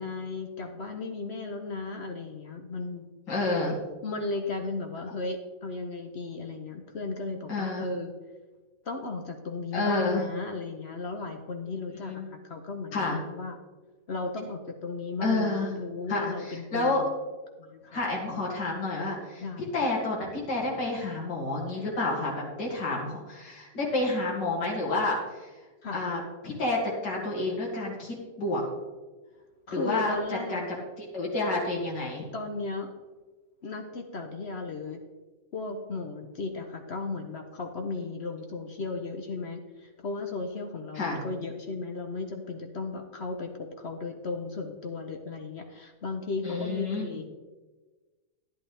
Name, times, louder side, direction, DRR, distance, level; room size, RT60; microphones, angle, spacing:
voice 1, 0.0-3.0 4.0-8.1 8.8-13.6 14.1-17.1 17.6-18.0 18.3-18.4 19.4-19.9 25.8-26.0 29.7-30.6 32.3-32.9 33.6-35.0 35.5-47.2, left 3 dB, 50° left, 4 dB, 0.8 m, -35 dB
voice 2, 3.3-3.7 7.5-7.8 9.7-10.2 12.0-12.2 12.9-13.2 15.2-15.7 16.1-17.0 17.9-19.4 19.7-25.4 25.9-28.6 29.7-30.1 30.5-30.7 31.1-32.3 40.9-41.2 46.4-47.1, left 2 dB, 80° left, -3 dB, 2.8 m, -29 dB
11.0 x 10.5 x 3.3 m, 1.3 s
omnidirectional pair, 1.9 m